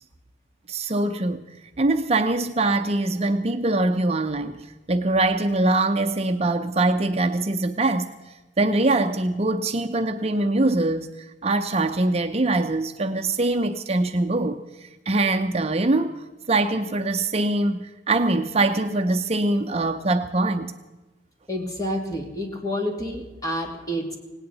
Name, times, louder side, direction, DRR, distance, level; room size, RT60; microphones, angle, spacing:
voice 1, 0.7-1.4 1.8-8.1 8.6-20.7, right 2 dB, 35° right, 0.6 m, -23 dB
voice 2, 21.5-24.2, equal, 20° left, 2.6 m, -29 dB
18.5 x 18.0 x 4.1 m
head